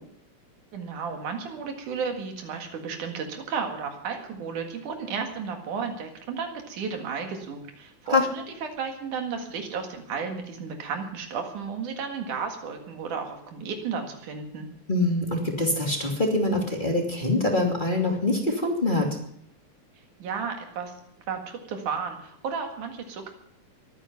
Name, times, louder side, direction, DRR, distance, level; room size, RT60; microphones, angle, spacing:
voice 1, 0.7-14.7 20.2-20.9 21.3-23.3, right 5 dB, 90° right, 4 dB, 3.5 m, -33 dB
voice 2, 14.9-19.2, left 2 dB, 15° left, -1 dB, 2.7 m, -24 dB
22.0 x 9.6 x 5.9 m, 0.69 s
omnidirectional pair, 3.4 m